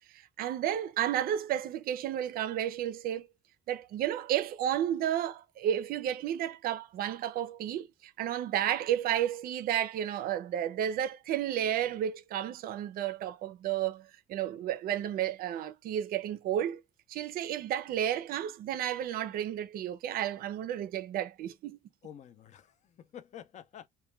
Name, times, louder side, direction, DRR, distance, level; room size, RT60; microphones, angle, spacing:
voice 1, 0.1-3.3 3.7-16.8 17.1-21.8, right 11 dB, 60° right, 0.4 m, -32 dB
voice 2, 22.0-23.9, left 9 dB, 45° left, 0.5 m, -49 dB
2.2 x 2.1 x 3.1 m
cardioid pair, 110°, 17 cm